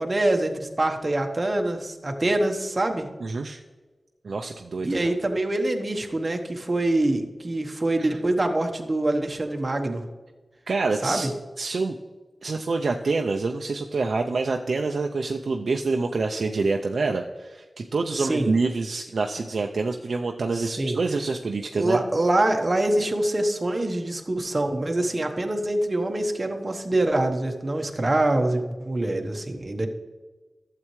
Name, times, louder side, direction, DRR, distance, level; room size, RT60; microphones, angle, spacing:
voice 1, 0.0-3.1 4.8-10.0 11.0-11.3 18.1-18.5 20.5-21.0 21.7-29.9, right 1 dB, 35° right, 4 dB, 1.0 m, -25 dB
voice 2, 3.2-3.6 4.2-5.1 10.7-11.3 11.6-12.0 12.4-22.0, right 3 dB, 80° right, 3 dB, 0.5 m, -26 dB
12.0 x 7.6 x 3.1 m, 1.3 s
wide cardioid pair, 95°, 0 cm